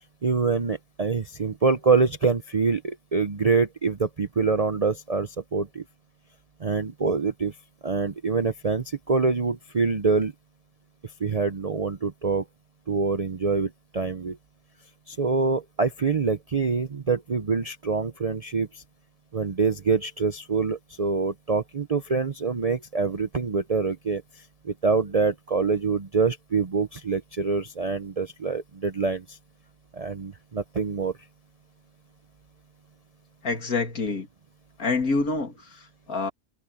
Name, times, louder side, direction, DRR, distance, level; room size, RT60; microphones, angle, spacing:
voice 1, 0.2-5.8 6.6-7.5 7.8-10.3 11.2-12.4 12.9-14.4 15.1-18.8 19.3-24.2 24.6-29.4 29.9-31.1, right 4 dB, 35° right, 0.6 m, -25 dB
voice 2, 33.4-34.3 34.8-36.3, left 3 dB, 85° left, 2.7 m, -27 dB
omnidirectional pair, 1.5 m